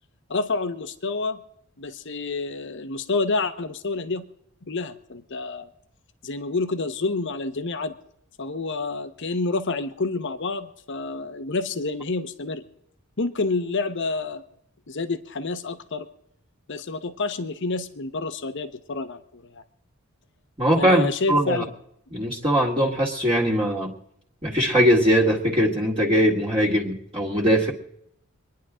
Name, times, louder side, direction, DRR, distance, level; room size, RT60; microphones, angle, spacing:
voice 1, 0.3-1.4 1.8-4.3 4.6-5.7 6.2-7.9 8.4-12.6 13.2-14.4 14.9-16.1 16.7-19.6 20.8-21.7, left 3 dB, 60° left, 11 dB, 1.0 m, -28 dB
voice 2, 20.6-21.6 22.1-23.9 24.4-27.7, equal, 25° right, -4 dB, 2.0 m, -21 dB
25.5 x 10.5 x 3.7 m, 0.73 s
head